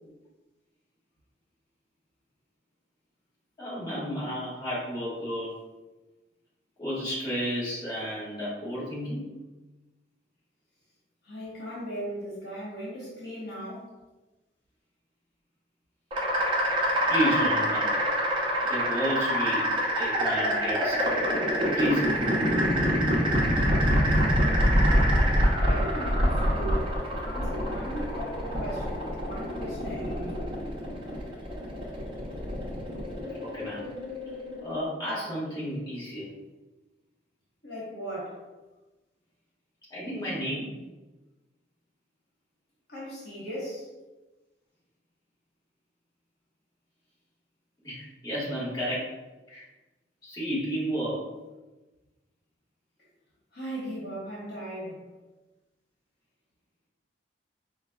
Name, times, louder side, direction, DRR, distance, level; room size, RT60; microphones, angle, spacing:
voice 1, 3.6-5.5 6.8-9.2 17.1-18.0 18.7-19.7 20.0-21.4 21.7-22.2 33.4-33.9 34.6-36.3 39.9-40.8 47.8-49.1 49.5-49.7 50.2-51.3, equal, 25° left, -9 dB, 1.5 m, -32 dB
voice 2, 11.2-13.9 25.5-26.9 27.2-30.5 37.6-38.4 42.9-43.9 53.5-55.0, equal, 65° left, -7 dB, 1.2 m, -37 dB
sound 1, 16.1-34.9, equal, 30° right, 0.7 m, -26 dB
4.9 x 2.1 x 2.3 m, 1.1 s
head